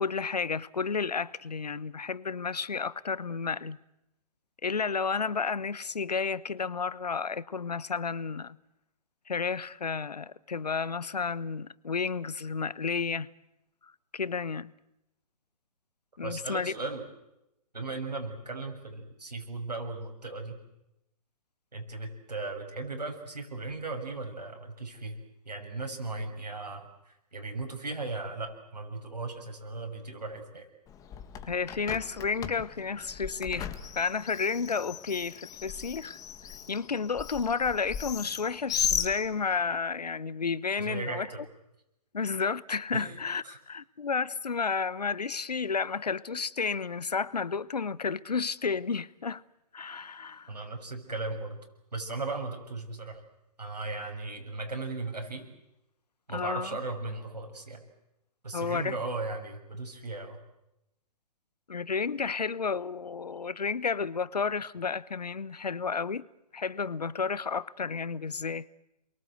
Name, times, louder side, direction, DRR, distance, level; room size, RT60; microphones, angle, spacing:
voice 1, 0.0-3.8 4.6-8.6 9.3-13.3 14.1-14.7 16.2-16.7 31.4-33.7 34.0-36.2 36.7-41.3 42.1-49.4 49.7-50.5 56.3-56.8 58.5-59.0 61.7-66.2 66.5-68.7, left 5 dB, 75° left, 1.0 m, -31 dB
voice 2, 16.2-17.0 17.7-20.6 21.7-25.2 25.4-30.7 40.8-41.4 42.9-43.2 43.4-43.6 50.5-51.6 51.9-53.2 53.6-55.5 56.3-57.8 58.4-60.4, right 3 dB, 80° right, 6.5 m, -37 dB
Bird, 30.9-39.8, left 8 dB, 15° left, 1.7 m, -37 dB
29.0 x 22.5 x 8.0 m
figure-of-eight pair, 125°, 21 cm